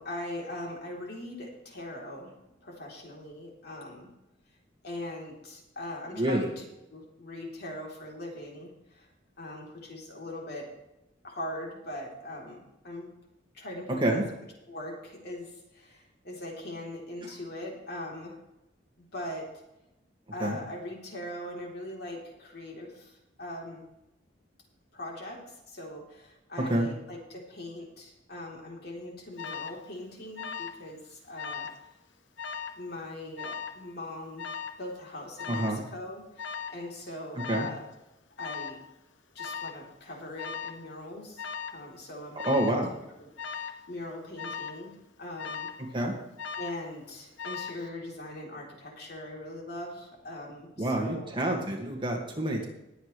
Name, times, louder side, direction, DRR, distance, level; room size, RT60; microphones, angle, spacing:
voice 1, 0.0-2.3 2.6-4.1 4.8-6.6 6.9-9.1 9.4-10.7 11.2-13.1 13.5-14.2 14.7-18.4 19.0-19.5 20.3-23.8 24.9-31.7 32.8-34.5 34.8-37.9 38.4-38.8 39.3-41.4 41.7-42.8 43.2-44.9 45.2-45.7 46.6-51.3, left 1 dB, 60° left, -1 dB, 3.8 m, -41 dB
voice 2, 6.1-6.5 14.0-14.2 17.2-17.3 20.4-20.6 26.7-26.9 35.5-35.8 37.5-37.7 42.5-42.9 45.9-46.1 50.8-52.7, right 1 dB, 25° right, 0 dB, 2.2 m, -27 dB
Alarm, 29.4-29.8 30.4-30.8 31.1-31.8 32.4-32.8 33.4-33.8 34.4-34.8 35.4-35.8 36.4-36.8 37.4-37.8 38.4-38.8 39.4-39.8 40.4-40.8 41.4-41.8 42.4-42.8 43.4-43.8 44.4-44.8 45.4-45.8 46.4-46.9 47.4-47.9, left 6 dB, 80° left, 1.1 m, -38 dB
20.5 x 8.0 x 3.4 m, 0.92 s
head